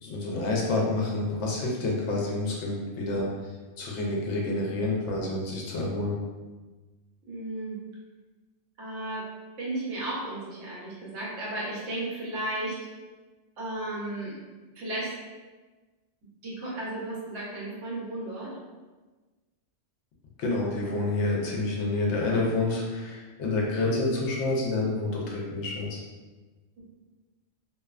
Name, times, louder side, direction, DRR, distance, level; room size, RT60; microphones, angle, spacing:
voice 1, 0.0-3.3 3.8-6.1 20.4-26.0, left 2 dB, 70° left, -2 dB, 0.8 m, -28 dB
voice 2, 7.3-7.8 8.8-9.2 9.6-12.7 13.6-14.4 14.7-15.1 16.4-18.5, right 1 dB, 75° right, -5 dB, 1.1 m, -34 dB
2.6 x 2.2 x 2.3 m, 1.3 s
omnidirectional pair, 1.3 m